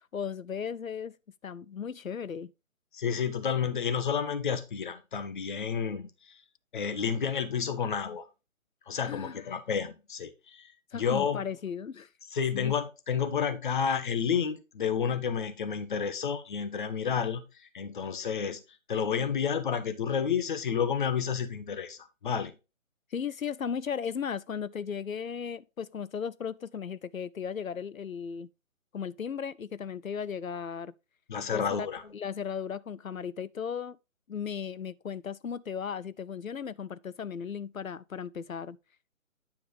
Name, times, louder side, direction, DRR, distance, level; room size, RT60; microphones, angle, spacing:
voice 1, 0.1-1.2 1.4-2.5 9.0-9.4 10.9-12.1 12.5-12.7 23.1-28.5 28.9-30.9 31.5-31.9 32.1-34.0 34.3-38.8, left 7 dB, 90° left, 0.6 m, -36 dB
voice 2, 2.9-6.4 6.7-8.2 8.9-11.4 12.3-18.6 18.9-22.5 31.3-32.1, left 7 dB, 40° left, 1.0 m, -30 dB
9.6 x 3.6 x 4.7 m
figure-of-eight pair, 145°, 40 cm